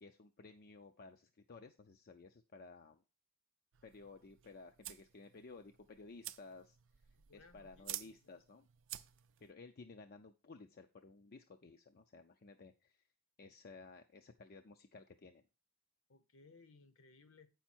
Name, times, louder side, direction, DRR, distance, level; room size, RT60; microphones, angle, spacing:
voice 1, 0.0-3.0 3.8-7.0 7.3-8.7 9.4-13.0 13.4-15.4, left 3 dB, 45° left, 0.5 m, -56 dB
sound 1, 3.7-9.5, right 15 dB, 60° right, 0.4 m, -51 dB
voice 2, 7.3-8.4 16.1-17.5, left 4 dB, 65° left, 1.0 m, -63 dB
8.3 x 5.7 x 4.4 m
head